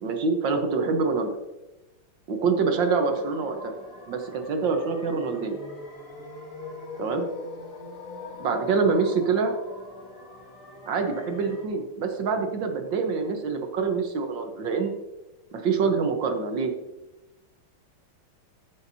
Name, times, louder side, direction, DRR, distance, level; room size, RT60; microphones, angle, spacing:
voice 1, 0.0-1.3 2.3-3.7 4.1-5.6 7.0-7.2 8.4-9.5 10.9-14.9 15.5-16.7, right 4 dB, 65° right, 5 dB, 1.7 m, -25 dB
sound 1, 3.0-11.6, left 3 dB, 40° left, 1.8 m, -41 dB
13.5 x 7.3 x 2.7 m, 0.99 s
omnidirectional pair, 2.3 m